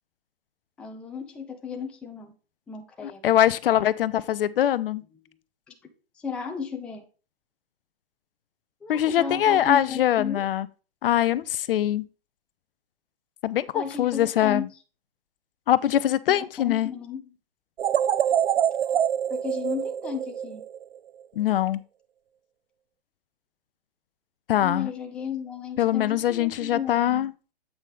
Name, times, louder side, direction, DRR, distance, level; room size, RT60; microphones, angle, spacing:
voice 1, 0.8-2.3 2.7-3.4 5.7-5.8 6.2-7.0 8.8-10.4 13.7-14.7 16.3-17.2 19.3-20.6 24.6-27.3, left 6 dB, 5° left, 0.4 m, -34 dB
voice 2, 3.0-5.0 8.9-10.7 11.0-12.0 13.4-14.7 15.7-16.9 21.4-21.8 24.5-24.9 25.8-27.3, left 11 dB, 60° left, 0.5 m, -23 dB
sound 1, 17.8-21.0, right 9 dB, 80° right, 0.5 m, -25 dB
8.2 x 5.3 x 3.2 m
hypercardioid pair, 130°, 31 cm